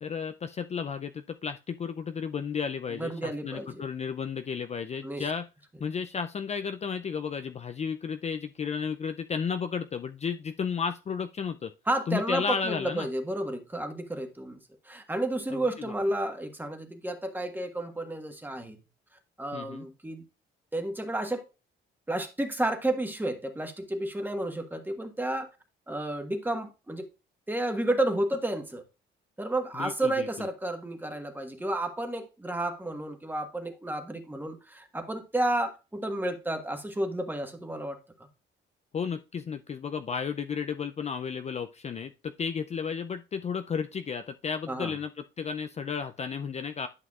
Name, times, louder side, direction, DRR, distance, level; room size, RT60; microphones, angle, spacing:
voice 1, 0.0-5.5 5.8-11.7 12.1-13.1 15.5-15.9 19.5-19.9 29.7-30.5 38.9-46.9, left 6 dB, 35° left, 0.4 m, -33 dB
voice 2, 2.9-3.8 5.0-5.3 11.9-14.6 14.9-18.8 19.4-20.2 20.7-21.4 22.1-25.5 25.9-27.0 27.5-28.8 29.4-38.3 44.7-44.9, right 1 dB, 10° right, 1.4 m, -31 dB
11.0 x 5.6 x 2.4 m
cardioid pair, 90°, 20 cm